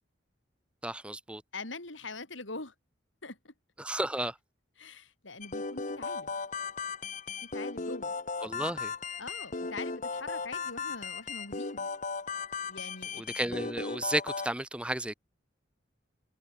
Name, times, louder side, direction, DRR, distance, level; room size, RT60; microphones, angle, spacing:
voice 1, 0.8-1.4 3.8-4.4 8.4-8.9 13.2-15.1, right 1 dB, 5° right, 0.8 m, -33 dB
voice 2, 1.5-2.7 3.2-3.5 4.8-6.3 7.4-8.1 9.2-11.9 12.7-13.2, left 3 dB, 80° left, 4.9 m, -43 dB
sound 1, 5.4-14.5, left 4 dB, 40° left, 1.2 m, -36 dB
head